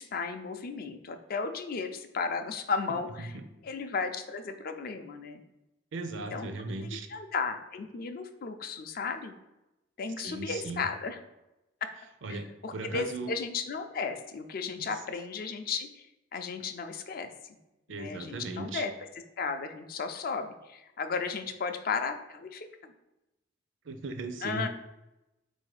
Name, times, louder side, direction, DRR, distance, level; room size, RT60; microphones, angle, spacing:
voice 1, 0.0-3.3 3.6-5.4 6.3-6.5 6.8-9.3 10.0-11.2 12.3-12.4 12.6-17.6 17.9-18.9 19.4-22.9 24.4-24.7, left 5 dB, 50° left, 7 dB, 0.4 m, -34 dB
voice 2, 5.9-7.1 10.2-10.9 12.2-13.3 14.8-14.9 17.9-18.9 23.8-24.7, right 3 dB, 80° right, 8 dB, 0.5 m, -37 dB
4.1 x 2.7 x 4.7 m, 0.95 s
head